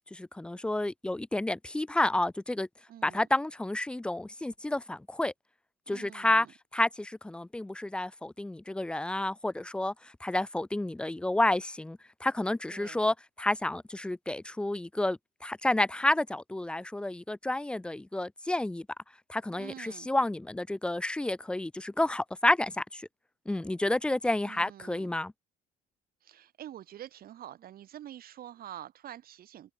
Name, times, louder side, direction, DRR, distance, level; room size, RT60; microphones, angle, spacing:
voice 1, 0.1-2.7 3.0-5.3 5.9-6.5 6.7-9.9 10.2-18.9 19.3-23.0 23.5-25.3, left 1 dB, 5° left, 0.3 m, -30 dB
voice 2, 2.9-3.3 5.9-6.5 12.7-13.0 19.6-20.1 24.4-25.1 26.2-29.7, right 11 dB, 60° right, 4.1 m, -47 dB
cardioid pair, 110°, 17 cm